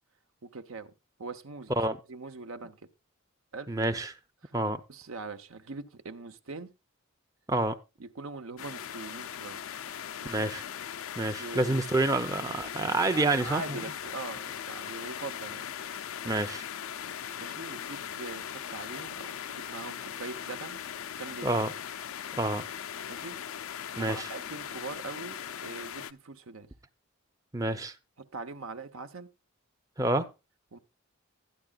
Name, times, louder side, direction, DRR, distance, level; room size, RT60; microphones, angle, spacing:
voice 1, 0.4-0.9 1.2-1.7 2.1-2.9 3.5-3.7 4.4-4.5 4.9-6.7 8.0-9.6 10.2-10.5 11.4-11.8 13.1-15.7 17.4-20.8 21.2-21.5 23.1-23.4 24.0-26.7 28.2-29.3 30.7-30.8, right 3 dB, 70° right, 0.9 m, -42 dB
voice 2, 3.7-4.1 4.5-4.8 7.5-7.8 10.2-10.6 11.2-13.8 16.2-16.6 21.4-21.7 22.4-22.7 24.0-24.3 27.5-27.9 30.0-30.3, right 2 dB, 15° right, 0.7 m, -28 dB
sound 1, 8.6-26.1, left 9 dB, 75° left, 0.5 m, -39 dB
13.0 x 9.9 x 2.4 m
head